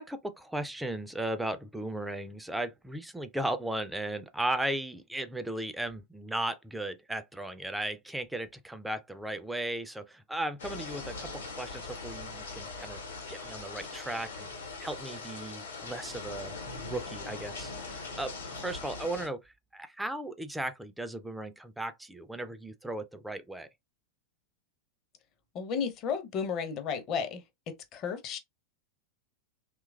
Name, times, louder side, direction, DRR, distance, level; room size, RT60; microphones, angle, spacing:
voice 1, 0.0-13.0 13.3-14.5 14.8-23.7, right 1 dB, 5° right, 0.3 m, -36 dB
sound 1, 10.6-19.3, left 3 dB, 70° left, 0.9 m, -41 dB
voice 2, 25.5-27.4 27.7-28.4, left 6 dB, 35° left, 0.6 m, -33 dB
2.9 x 2.3 x 2.3 m
figure-of-eight pair, 90°, 0 cm